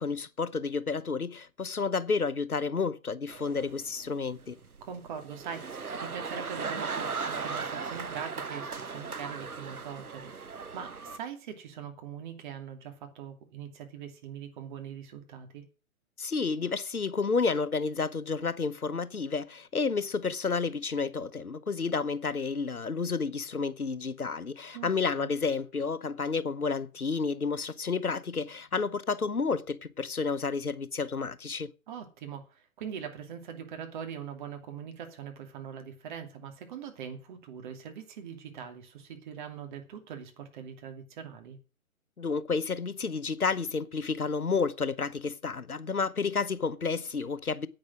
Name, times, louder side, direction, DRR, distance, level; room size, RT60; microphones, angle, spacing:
voice 1, 0.0-4.6 16.2-31.7 42.2-47.7, left 4 dB, 85° left, 0.9 m, -30 dB
sound 1, 3.3-11.2, right 5 dB, 85° right, 1.0 m, -38 dB
voice 2, 4.8-15.6 24.7-24.9 25.2-25.3 31.9-41.6, right 7 dB, 35° right, 2.6 m, -42 dB
10.5 x 8.7 x 6.1 m
figure-of-eight pair, 130°, 43 cm